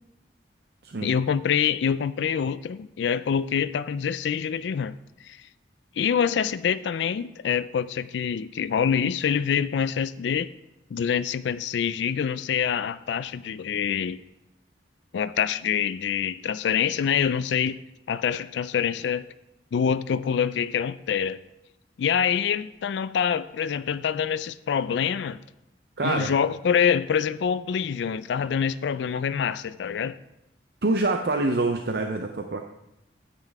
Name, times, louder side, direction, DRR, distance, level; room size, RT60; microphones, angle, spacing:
voice 1, 1.0-5.0 5.2-5.4 6.0-10.5 10.9-14.2 15.1-17.8 18.1-19.3 19.7-21.4 22.0-25.4 26.0-30.2, left 7 dB, 80° left, 0.3 m, -25 dB
voice 2, 26.0-26.3 30.8-32.7, right 2 dB, 65° right, 0.6 m, -25 dB
9.9 x 8.4 x 3.5 m
head